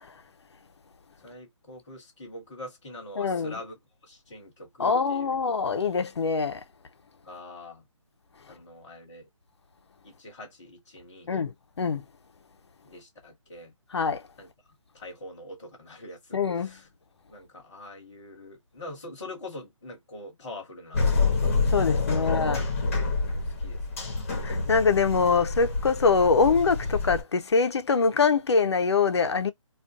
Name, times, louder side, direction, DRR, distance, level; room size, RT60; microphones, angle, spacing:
voice 1, 1.2-5.4 7.2-7.8 8.5-9.3 10.0-11.5 12.8-13.7 14.4-14.5 14.9-16.9 17.3-21.1 22.2-22.8 23.6-24.3, left 1 dB, 5° left, 0.4 m, -44 dB
voice 2, 3.2-3.6 4.8-6.6 11.3-12.0 13.9-14.2 16.3-16.7 21.7-22.6 24.4-29.5, left 5 dB, 55° left, 0.5 m, -24 dB
sound 1, 20.9-27.2, left 3 dB, 25° left, 0.8 m, -27 dB
2.5 x 2.3 x 3.5 m
hypercardioid pair, 170°, 17 cm